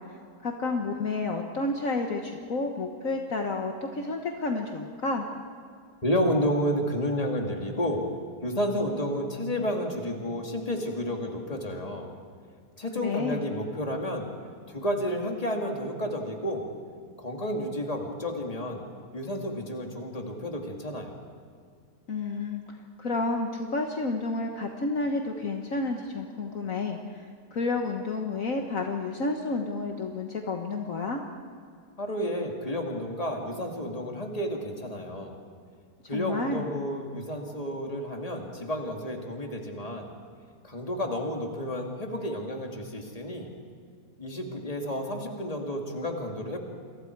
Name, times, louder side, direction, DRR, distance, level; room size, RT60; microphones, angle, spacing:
voice 1, 0.4-5.3 13.0-13.4 22.1-22.6 23.0-27.3 27.5-31.2 36.1-36.7, left 3 dB, 55° left, 2 dB, 1.7 m, -30 dB
voice 2, 6.0-8.0 8.4-12.1 12.8-14.3 14.7-16.7 17.2-18.8 19.1-21.2 32.0-35.4 36.1-40.1 40.6-43.5 44.2-46.6, equal, 20° left, 1 dB, 2.5 m, -31 dB
29.0 x 23.5 x 4.7 m, 2.2 s
omnidirectional pair, 1.7 m